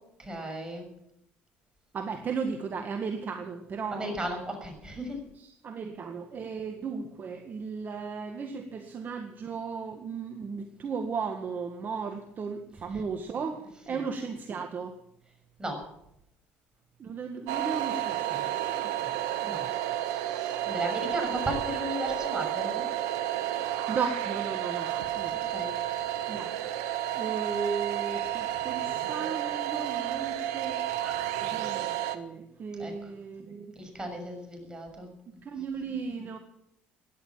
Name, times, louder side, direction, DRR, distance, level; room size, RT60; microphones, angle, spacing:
voice 1, 0.2-0.9 3.9-5.2 12.9-13.0 13.9-14.0 15.6-15.8 19.4-19.6 20.1-22.9 25.3-25.7 31.0-31.3 32.8-32.9 33.8-35.1, right 1 dB, 15° right, 4 dB, 6.6 m, -35 dB
voice 2, 1.9-4.2 5.3-14.9 17.0-19.2 19.4-19.8 23.7-25.4 26.3-26.5 27.1-30.8 31.4-33.7 35.4-36.4, right 5 dB, 40° right, 6 dB, 1.7 m, -36 dB
sound 1, 17.5-32.2, right 12 dB, 85° right, 1.3 m, -31 dB
17.0 x 11.0 x 7.5 m, 0.78 s
supercardioid pair, 85°, 5 cm